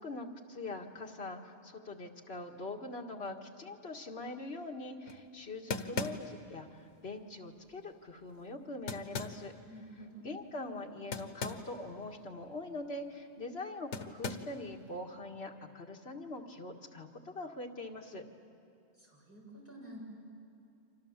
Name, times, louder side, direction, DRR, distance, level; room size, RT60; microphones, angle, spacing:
voice 1, 0.0-9.5 10.2-18.3, left 2 dB, 65° left, 2 dB, 2.0 m, -43 dB
sound 1, 5.1-5.2 5.7-6.5 8.9-9.5 11.1-11.7 12.0-12.1 13.9-14.6, left 3 dB, 85° left, 1.5 m, -38 dB
voice 2, 9.7-10.3 19.0-20.0, equal, 10° right, -4 dB, 7.0 m, -50 dB
30.0 x 25.5 x 7.3 m, 2.7 s
omnidirectional pair, 1.1 m